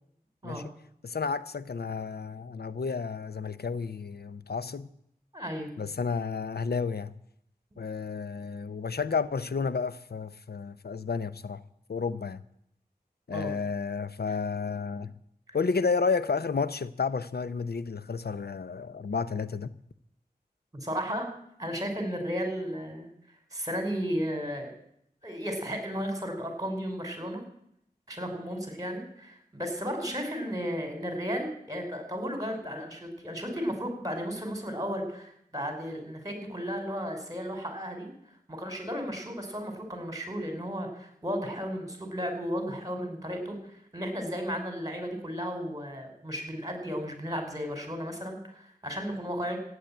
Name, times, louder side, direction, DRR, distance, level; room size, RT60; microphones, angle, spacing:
voice 1, 1.0-4.9 5.8-7.1 7.8-11.6 11.9-12.4 13.3-15.1 15.5-19.7, left 5 dB, 85° left, 0.8 m, -31 dB
voice 2, 5.3-5.7 13.3-13.5 14.3-14.4 15.5-15.6 20.7-21.3 21.6-23.1 23.5-24.7 25.2-27.4 28.1-38.1 38.5-49.6, equal, 20° right, 5.2 m, -34 dB
14.5 x 9.9 x 8.9 m
wide cardioid pair, 40°, 16 cm